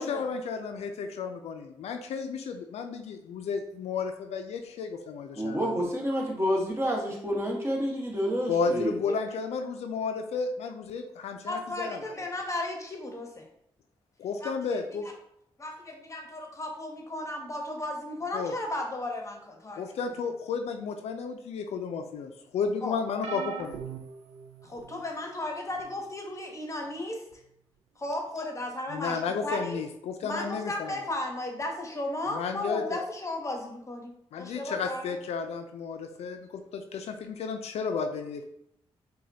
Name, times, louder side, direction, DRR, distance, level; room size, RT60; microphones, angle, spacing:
voice 1, 0.0-5.9 8.5-12.1 14.2-15.1 18.3-18.5 19.8-23.8 28.9-31.0 32.3-33.0 34.3-38.4, left 5 dB, 75° left, 6 dB, 0.4 m, -33 dB
voice 2, 5.4-9.0, equal, 25° right, -1 dB, 1.3 m, -29 dB
voice 3, 11.5-13.5 14.4-14.8 15.6-19.8 22.8-23.0 24.6-27.2 28.0-29.8 30.2-35.1, left 1 dB, 30° left, 2 dB, 0.9 m, -35 dB
sound 1, 23.2-25.0 25.8-26.0 27.3-27.4, right 7 dB, 75° right, 0.4 m, -40 dB
4.8 x 2.2 x 2.7 m, 0.76 s
supercardioid pair, 50°, 11 cm